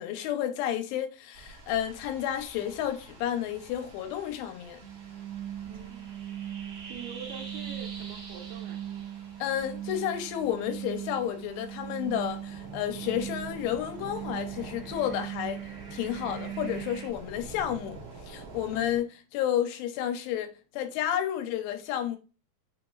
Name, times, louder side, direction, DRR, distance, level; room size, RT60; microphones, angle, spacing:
voice 1, 0.0-4.8 9.4-22.2, left 10 dB, 85° left, 2.6 m, -31 dB
sound 1, 1.3-19.0, right 3 dB, 55° right, 1.7 m, -49 dB
sound 2, 4.8-17.1, right 10 dB, 30° right, 1.9 m, -39 dB
voice 2, 5.7-6.1 6.9-8.8, right 8 dB, 80° right, 2.3 m, -44 dB
6.5 x 2.9 x 2.3 m
omnidirectional pair, 4.8 m